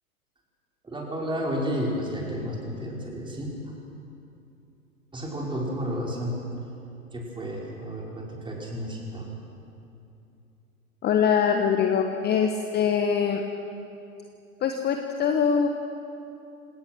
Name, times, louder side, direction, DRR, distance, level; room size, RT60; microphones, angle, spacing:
voice 1, 0.8-3.7 5.1-6.4 7.1-9.3, equal, 10° right, -3 dB, 5.2 m, -31 dB
voice 2, 11.0-13.4 14.6-15.7, left 7 dB, 20° left, 5 dB, 1.2 m, -23 dB
28.0 x 18.0 x 6.1 m, 2.8 s
figure-of-eight pair, 95°, 44 cm